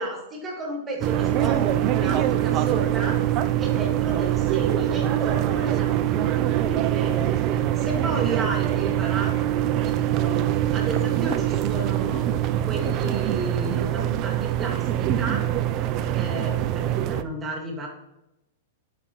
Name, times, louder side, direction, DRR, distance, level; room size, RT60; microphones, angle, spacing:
voice 1, 0.0-3.2 3.6-7.3 7.8-12.3 12.7-15.4 16.1-17.9, right 2 dB, 20° right, 0 dB, 2.1 m, -33 dB
sound 1, 1.0-17.2, right 12 dB, 40° right, 0.5 m, -24 dB
11.0 x 5.0 x 3.1 m, 0.89 s
hypercardioid pair, 125°, 0 cm